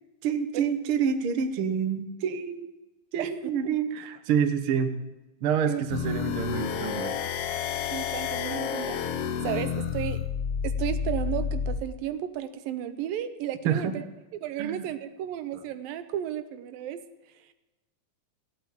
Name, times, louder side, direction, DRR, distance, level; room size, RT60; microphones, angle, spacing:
voice 1, 0.2-2.7 3.1-5.0 5.4-7.1 13.6-13.9 14.6-14.9, right 7 dB, 60° right, 7 dB, 1.5 m, -27 dB
sound 1, 5.9-11.8, left 7 dB, 85° left, 1.3 m, -30 dB
voice 2, 7.9-9.0 9.4-10.2 10.6-14.1 14.4-17.0, right 11 dB, 85° right, 11 dB, 2.7 m, -33 dB
16.5 x 8.7 x 9.1 m, 1.1 s
omnidirectional pair, 4.1 m